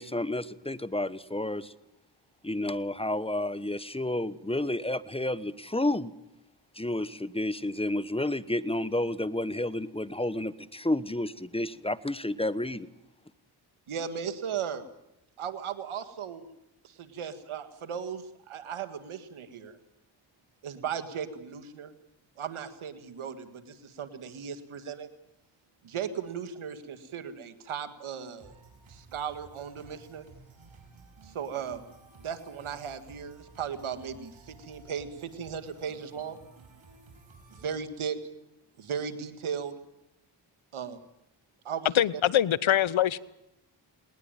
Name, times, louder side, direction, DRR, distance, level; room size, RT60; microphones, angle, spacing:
voice 1, 0.0-1.7 2.4-6.1 6.8-12.9, left 1 dB, 10° left, 1.1 m, -30 dB
voice 2, 13.9-14.9 15.4-16.5 16.8-19.8 20.6-21.9 22.4-25.1 25.8-28.5 28.9-30.3 31.2-31.8 32.2-36.4 37.5-38.2 38.8-39.8 40.7-41.0 41.6-41.9, right 7 dB, 85° right, 1.9 m, -36 dB
sound 1, 28.4-37.7, right 4 dB, 70° right, 6.1 m, -54 dB
voice 3, 41.9-43.2, left 11 dB, 70° left, 0.9 m, -23 dB
20.0 x 19.5 x 9.0 m
cardioid pair, 50°, 48 cm